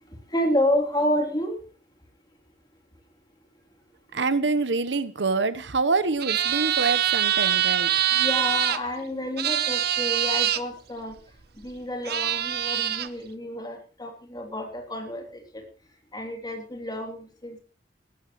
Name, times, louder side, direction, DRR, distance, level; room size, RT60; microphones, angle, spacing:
voice 1, 0.1-1.6 8.1-11.2 11.5-15.6 16.1-17.6, left 1 dB, 25° left, 3 dB, 3.2 m, -29 dB
voice 2, 4.1-7.9, right 4 dB, 80° right, 14 dB, 1.1 m, -26 dB
sound 1, 6.2-8.8 9.4-10.6 11.6-11.7 12.0-13.1, right 11 dB, 60° right, 0.8 m, -24 dB
19.5 x 14.0 x 3.2 m, 0.35 s
head